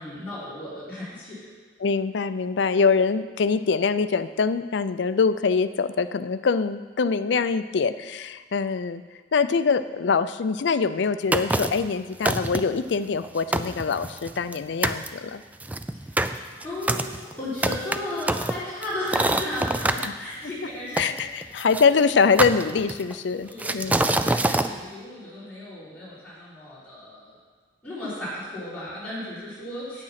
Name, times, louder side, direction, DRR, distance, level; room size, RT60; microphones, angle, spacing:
voice 1, 0.0-1.4 15.9-16.2 16.5-21.4 23.4-27.4 27.8-30.0, left 1 dB, 10° left, -11 dB, 3.9 m, -35 dB
voice 2, 1.8-9.0 9.3-15.4 20.0-20.1 21.0-24.0, left 5 dB, 70° left, 13 dB, 0.4 m, -24 dB
sound 1, 11.3-11.9 12.2-12.8 13.2-13.3 13.5-14.6 14.8-15.1 15.6-20.1 21.0-21.8 22.4-23.1 23.6-24.7, right 2 dB, 10° right, 0.3 m, -25 dB
9.1 x 8.6 x 5.8 m, 1.4 s
head